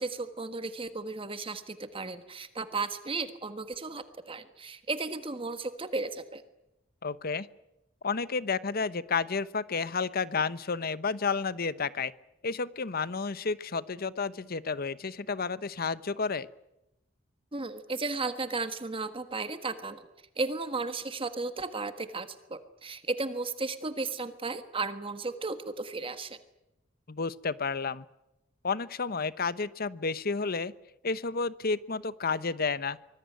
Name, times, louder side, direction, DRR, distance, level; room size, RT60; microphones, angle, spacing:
voice 1, 0.0-6.4 17.5-20.1 20.4-26.4, right 3 dB, 30° right, 10 dB, 1.5 m, -34 dB
voice 2, 7.0-7.5 8.0-12.1 12.4-16.5 27.1-28.0 28.6-30.7 31.0-33.0, left 4 dB, 50° left, 16 dB, 0.9 m, -31 dB
25.5 x 20.0 x 9.3 m, 0.91 s
head